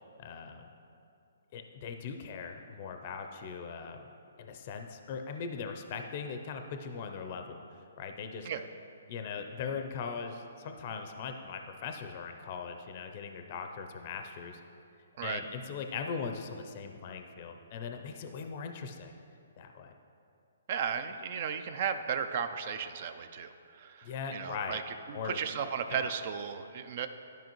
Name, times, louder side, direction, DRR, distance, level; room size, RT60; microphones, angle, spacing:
voice 1, 0.2-0.7 1.5-4.1 4.4-7.6 8.0-8.5 9.1-14.6 15.2-19.1 19.6-19.9 24.0-24.8 25.1-25.4 25.9-26.1, left 5 dB, 40° left, 5 dB, 0.5 m, -40 dB
voice 2, 20.7-27.1, right 7 dB, 45° right, 9 dB, 0.4 m, -35 dB
12.5 x 5.1 x 3.0 m, 2.6 s
hypercardioid pair, 145°, 0 cm